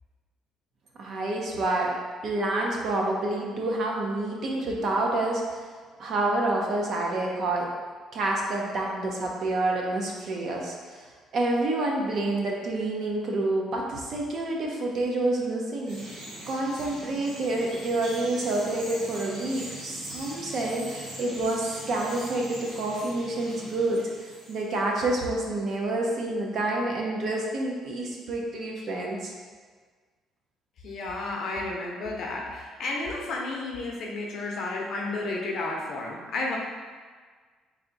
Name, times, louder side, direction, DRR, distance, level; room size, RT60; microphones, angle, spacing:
voice 1, 1.0-1.9 2.2-5.7 6.0-7.7 8.1-11.1 11.3-29.3, right 2 dB, 45° right, -1 dB, 0.6 m, -28 dB
Bird vocalization bird call bird song, 15.9-24.8, right 1 dB, 80° right, 1.4 m, -41 dB
voice 2, 30.8-36.6, left 2 dB, 50° left, -1 dB, 0.6 m, -32 dB
3.4 x 2.6 x 3.9 m, 1.5 s
cardioid pair, 165°, 0 cm